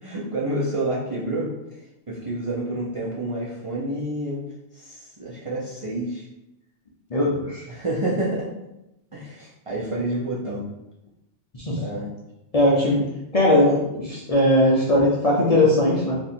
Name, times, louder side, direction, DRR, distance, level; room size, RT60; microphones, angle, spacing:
voice 1, 0.0-1.5 2.1-4.4 4.7-6.2 7.7-8.5 9.1-10.6 11.8-12.1, right 1 dB, 35° right, -7 dB, 0.6 m, -28 dB
voice 2, 7.1-7.7 11.6-11.8 12.5-13.0 13.3-16.1, left 1 dB, 40° left, -6 dB, 0.6 m, -19 dB
2.7 x 2.6 x 4.2 m, 0.89 s
omnidirectional pair, 1.2 m